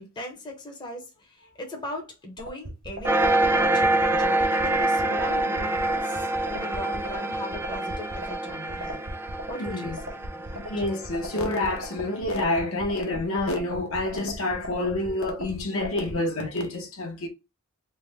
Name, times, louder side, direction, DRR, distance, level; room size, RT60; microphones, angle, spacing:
voice 1, 0.0-9.0 9.5-10.6, left 1 dB, 20° left, 0.8 m, -39 dB
sound 1, 2.4-16.2, equal, 60° right, 1.1 m, -37 dB
sound 2, 3.0-12.1, right 2 dB, 10° right, 0.3 m, -26 dB
voice 2, 9.6-10.0 10.5-17.3, left 2 dB, 70° left, 1.0 m, -28 dB
3.3 x 2.1 x 3.3 m
head